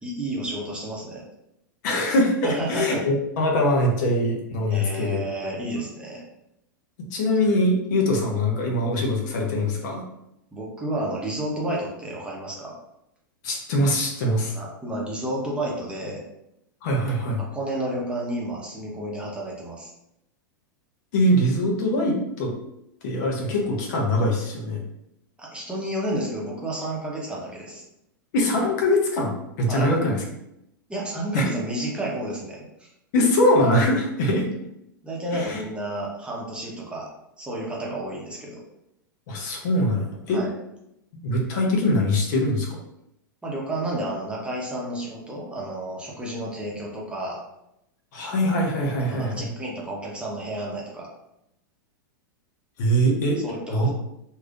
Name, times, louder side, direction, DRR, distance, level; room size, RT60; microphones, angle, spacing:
voice 1, 0.0-1.2 2.4-3.0 4.7-6.2 10.5-12.7 14.5-16.2 17.4-19.9 25.4-27.8 29.7-29.9 30.9-32.9 35.0-37.1 37.4-38.6 40.3-40.5 43.4-47.4 49.1-51.1 53.4-53.9, right 1 dB, 10° right, -4 dB, 0.9 m, -31 dB
voice 2, 1.8-5.2 7.1-10.0 13.4-14.5 16.8-17.4 21.1-22.5 23.0-24.8 28.3-30.2 31.3-31.4 33.1-34.5 35.3-35.6 39.3-40.4 41.1-42.8 48.1-49.5 52.8-53.4 53.7-53.9, left 1 dB, 55° left, 0 dB, 0.9 m, -22 dB
3.2 x 2.7 x 2.5 m, 0.82 s
hypercardioid pair, 100°, 11 cm